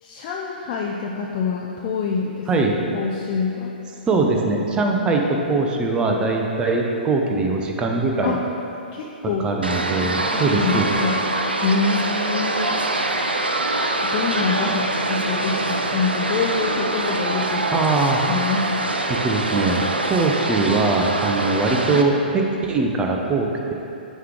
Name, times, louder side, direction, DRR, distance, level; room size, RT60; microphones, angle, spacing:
voice 1, 0.0-2.5 2.9-3.7 8.2-8.4 8.9-9.4 10.0-11.3 11.6-12.7 14.0-17.8 18.3-19.0, left 5 dB, 35° left, -2 dB, 0.4 m, -26 dB
voice 2, 2.5-2.8 4.1-8.3 9.4-10.9 17.7-18.2 19.1-19.8 20.1-23.7, right 3 dB, 15° right, 1 dB, 0.6 m, -21 dB
sound 1, 9.6-22.0, right 2 dB, 85° right, 0.5 m, -24 dB
9.1 x 3.1 x 3.6 m, 2.9 s
figure-of-eight pair, 115°, 5 cm